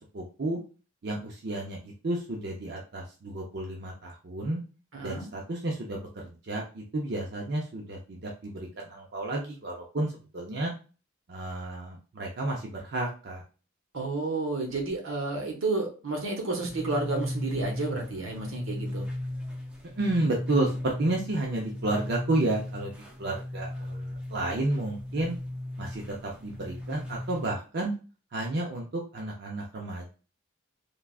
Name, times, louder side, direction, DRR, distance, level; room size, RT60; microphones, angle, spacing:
voice 1, 0.1-0.6 1.0-4.6 5.0-10.7 11.3-13.4 20.0-22.9 23.2-25.4 25.8-27.9 28.3-30.1, right 2 dB, 55° right, -1 dB, 0.5 m, -31 dB
voice 2, 4.9-5.3 13.9-19.0, right 3 dB, 80° right, 2 dB, 0.9 m, -31 dB
sound 1, 16.6-27.6, left 1 dB, 5° right, 0.4 m, -37 dB
3.3 x 2.3 x 2.3 m, 0.35 s
head